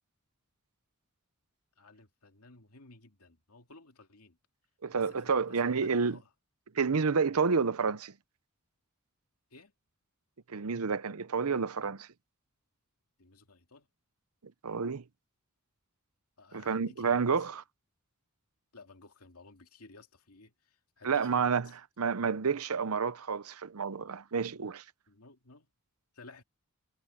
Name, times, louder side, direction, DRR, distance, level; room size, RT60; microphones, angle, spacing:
voice 1, 1.8-4.4 4.9-6.3 9.5-9.7 13.2-13.9 16.4-17.5 18.7-21.8 25.1-25.7 26.1-26.4, left 3 dB, 85° left, 2.4 m, -55 dB
voice 2, 4.8-6.2 6.7-8.1 10.5-12.1 14.6-15.0 16.5-17.6 21.0-21.7 22.0-24.8, right 5 dB, 80° right, 0.7 m, -29 dB
head